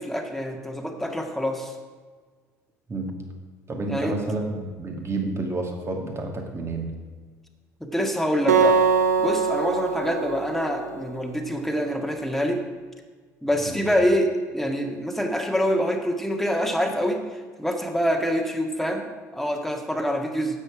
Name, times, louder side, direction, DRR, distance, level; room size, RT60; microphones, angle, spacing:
voice 1, 0.0-1.7 3.9-4.1 5.2-5.3 7.8-8.8 9.2-12.6 13.4-20.6, equal, 5° left, 3 dB, 1.8 m, -26 dB
voice 2, 3.7-6.9 13.7-13.8, right 2 dB, 30° right, 2 dB, 2.3 m, -30 dB
Acoustic guitar, 8.5-11.7, right 5 dB, 75° right, 0.9 m, -23 dB
12.5 x 8.6 x 4.9 m, 1.5 s
figure-of-eight pair, 55°, 9 cm